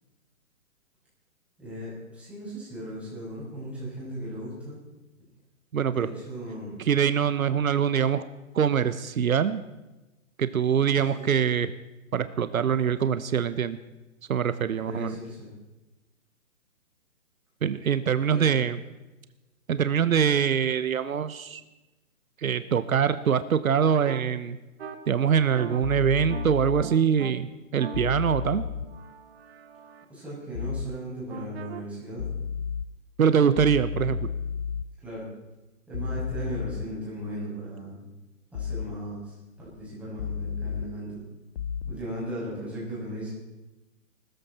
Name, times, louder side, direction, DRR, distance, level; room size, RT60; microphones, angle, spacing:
voice 1, 1.6-4.8 5.9-6.8 11.0-11.3 14.8-15.5 18.2-18.6 30.1-32.3 35.0-35.3 35.9-38.0 38.5-41.2 41.8-43.3, right 1 dB, 5° right, -8 dB, 6.6 m, -37 dB
voice 2, 5.7-6.1 6.9-8.2 8.5-9.6 10.4-11.7 12.1-13.8 14.3-15.1 17.6-18.8 19.7-21.6 22.4-24.6 25.1-28.6 33.2-34.3, right 7 dB, 80° right, 13 dB, 1.0 m, -24 dB
sound 1, 24.0-24.2 24.8-25.0 25.5-25.8 26.3-26.5 26.8-27.3 27.8-30.0 31.3-31.8, right 7 dB, 50° right, 1.4 m, -40 dB
sound 2, 25.8-26.8 27.9-28.9 30.5-30.9 32.2-32.8 33.6-34.8 35.9-36.9 38.5-38.9 40.2-40.8 41.6-41.9, left 7 dB, 55° left, 0.7 m, -32 dB
20.0 x 14.0 x 4.3 m, 1.0 s
hypercardioid pair, 155°, 41 cm